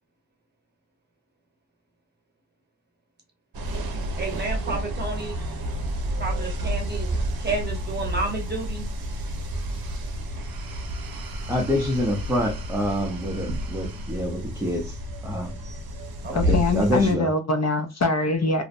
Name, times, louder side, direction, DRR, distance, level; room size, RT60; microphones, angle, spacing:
sound 1, 3.5-17.1, equal, 70° right, 0.6 m, -30 dB
voice 1, 4.2-5.4 6.2-7.1 7.4-8.9 16.2-16.5, right 3 dB, 25° right, 0.9 m, -31 dB
voice 2, 11.5-15.5 16.3-17.3, equal, 5° right, 0.5 m, -27 dB
voice 3, 16.3-18.6, left 3 dB, 45° left, 0.4 m, -23 dB
2.5 x 2.1 x 2.5 m
wide cardioid pair, 100°, 37 cm